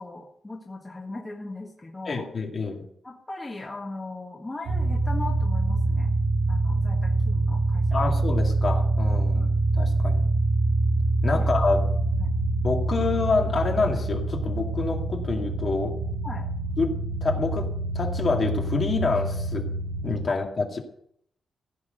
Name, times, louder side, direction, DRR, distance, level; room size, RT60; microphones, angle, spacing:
voice 1, 0.0-2.3 3.0-6.2 6.5-8.1 9.3-9.5 11.3-11.5 12.2-12.3 16.2-16.5 20.3-20.4, left 2 dB, 15° left, -1 dB, 1.7 m, -38 dB
voice 2, 2.1-2.8 7.9-10.3 11.2-11.8 12.6-15.9 16.8-17.7 17.9-19.7 20.0-20.8, left 4 dB, 40° left, 2 dB, 2.3 m, -27 dB
sound 1, 4.7-20.3, right 2 dB, 65° right, 1.9 m, -25 dB
16.0 x 6.2 x 9.2 m, 0.68 s
wide cardioid pair, 170°, 0 cm